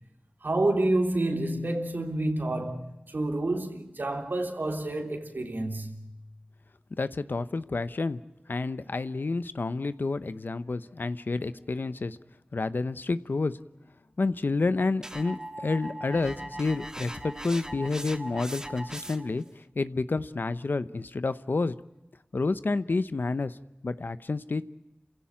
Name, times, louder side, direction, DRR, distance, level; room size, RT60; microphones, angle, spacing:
voice 1, 0.4-6.1, right 2 dB, 80° right, 3.2 m, -29 dB
voice 2, 7.0-8.2 8.5-12.2 12.5-13.5 14.2-19.4 19.7-21.8 22.3-23.6 23.8-24.6, left 3 dB, 80° left, 0.8 m, -29 dB
sound 1, 15.0-19.4, right 1 dB, 20° right, 1.6 m, -40 dB
29.0 x 16.5 x 8.7 m
wide cardioid pair, 60°, 3 cm